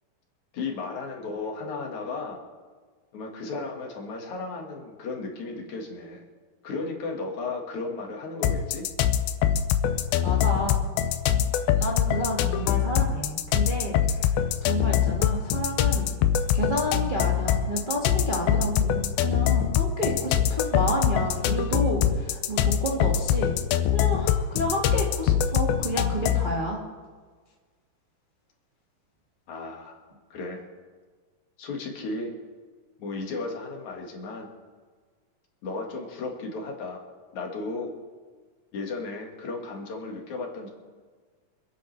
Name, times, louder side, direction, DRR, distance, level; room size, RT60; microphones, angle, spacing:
voice 1, 0.5-2.4 3.1-6.2 6.6-8.9 29.5-30.0 30.3-30.6 31.6-32.3 33.0-34.5 35.6-37.0 37.3-37.9 38.7-40.7, left 3 dB, 55° left, 1 dB, 2.9 m, -34 dB
sound 1, 8.4-26.5, left 10 dB, 80° left, 2.4 m, -24 dB
voice 2, 10.2-10.8 11.3-11.4 11.8-16.1 16.5-23.6 23.9-26.8, right 1 dB, 40° right, -3 dB, 0.6 m, -30 dB
26.0 x 10.5 x 3.3 m, 1.5 s
omnidirectional pair, 4.4 m